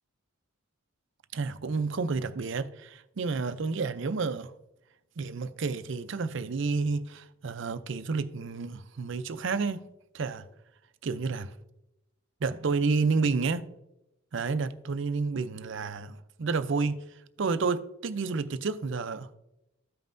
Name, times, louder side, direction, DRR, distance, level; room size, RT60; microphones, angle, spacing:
voice 1, 1.3-4.5 5.2-9.9 10.1-10.5 11.0-11.5 12.4-13.7 14.3-17.0 17.4-19.4, right 4 dB, 60° right, 0.5 m, -30 dB
13.5 x 5.4 x 2.6 m
head